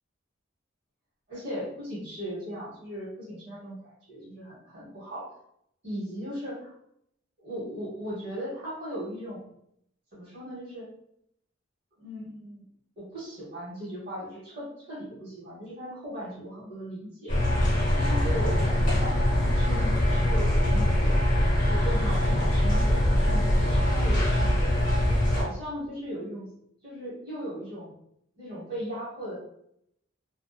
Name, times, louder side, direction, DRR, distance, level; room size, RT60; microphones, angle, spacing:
voice 1, 1.3-5.3 5.8-6.7 7.4-9.4 10.1-10.9 12.0-12.6 13.0-17.4 17.9-21.1 21.6-24.7 25.3-26.5 26.8-27.9 28.4-29.4, equal, 50° right, -9 dB, 0.9 m, -37 dB
sound 1, 17.3-25.4, left 1 dB, 40° left, 0.9 m, -23 dB
2.6 x 2.2 x 2.2 m, 0.73 s
head